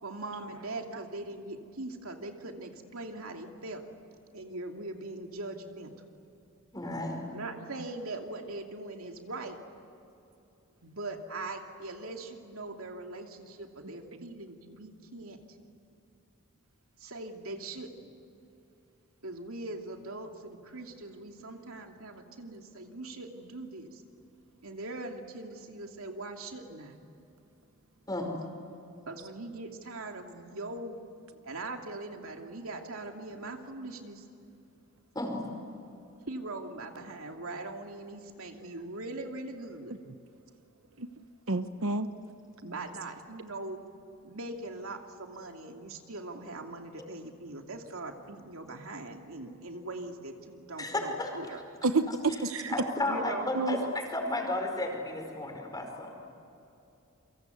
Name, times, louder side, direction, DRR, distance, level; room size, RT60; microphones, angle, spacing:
voice 1, 0.0-3.8 4.3-5.9 7.3-9.6 10.8-15.4 17.0-18.1 19.2-24.0 24.6-27.0 29.1-30.9 31.4-34.3 36.3-39.9 42.6-43.8 44.2-51.6 53.0-53.5, right 2 dB, 85° right, 3 dB, 2.6 m, -41 dB
voice 2, 6.7-7.2 28.1-28.3 35.1-35.5 50.8-51.3 52.3-52.4 52.7-56.2, left 2 dB, 20° left, 2 dB, 5.1 m, -33 dB
voice 3, 41.5-42.1 51.8-52.7 53.5-53.8, right 3 dB, 70° right, 9 dB, 1.0 m, -29 dB
29.5 x 24.0 x 8.1 m, 2.8 s
head